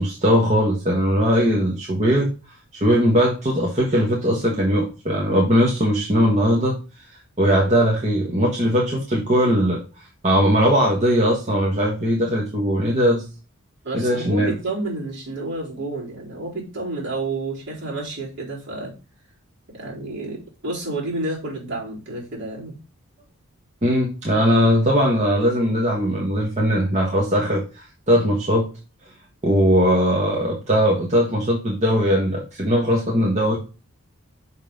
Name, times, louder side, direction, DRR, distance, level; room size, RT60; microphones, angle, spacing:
voice 1, 0.0-2.3 2.8-6.8 7.4-13.2 13.9-14.5 23.8-28.7 29.4-33.6, equal, 30° right, -2 dB, 1.5 m, -19 dB
voice 2, 13.8-18.9 19.7-22.8, right 2 dB, 55° right, -4 dB, 4.0 m, -30 dB
6.3 x 5.5 x 3.9 m, 0.32 s
head